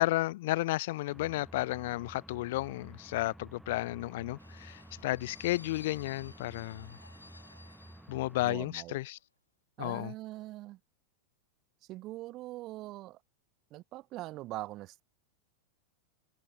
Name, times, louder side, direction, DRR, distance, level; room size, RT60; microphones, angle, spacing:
voice 1, 0.0-7.0 8.1-9.2 9.8-10.1, left 18 dB, 50° left, 0.3 m, -32 dB
sound 1, 1.1-8.4, right 1 dB, 5° right, 1.3 m, -52 dB
sound 2, 4.4-8.8 9.0-9.2, left 2 dB, 85° left, 1.3 m, -55 dB
voice 2, 8.4-9.0 9.8-10.8 11.9-13.2 13.7-15.0, right 17 dB, 35° right, 2.0 m, -42 dB
figure-of-eight pair, 90°, 0 cm